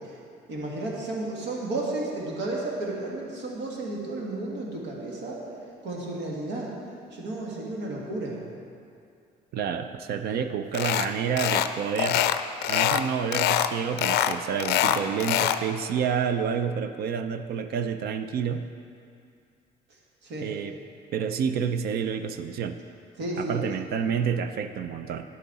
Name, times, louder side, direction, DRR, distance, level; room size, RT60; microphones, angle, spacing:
voice 1, 0.5-5.4 5.8-6.7 7.1-8.4 20.2-20.5 23.2-23.6, right 2 dB, 90° right, -3 dB, 1.9 m, -32 dB
voice 2, 9.5-12.3 12.7-18.7 20.4-20.8 21.1-22.8 23.4-25.2, right 7 dB, 65° right, 9 dB, 0.5 m, -29 dB
sound 1, 10.7-11.1 11.4-11.7 12.0-13.0 13.3-13.7 14.0-15.6, left 11 dB, 75° left, 0.4 m, -24 dB
10.0 x 8.3 x 4.1 m, 2.4 s
cardioid pair, 110°, 17 cm